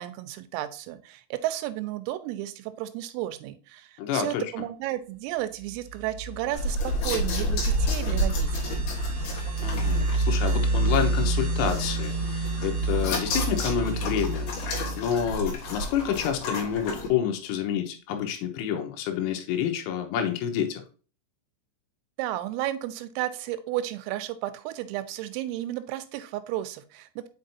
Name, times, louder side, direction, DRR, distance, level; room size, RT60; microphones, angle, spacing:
voice 1, 0.0-8.8 22.2-27.3, right 14 dB, 90° right, 11 dB, 3.4 m, -33 dB
voice 2, 4.0-4.5 9.6-14.5 15.0-20.8, left 8 dB, 80° left, 5 dB, 3.6 m, -28 dB
sound 1, 5.8-16.4, right 2 dB, 60° right, 2.1 m, -29 dB
sound 2, 6.5-17.1, left 1 dB, 60° left, 3.0 m, -32 dB
7.5 x 5.4 x 2.7 m, 0.38 s
omnidirectional pair, 5.9 m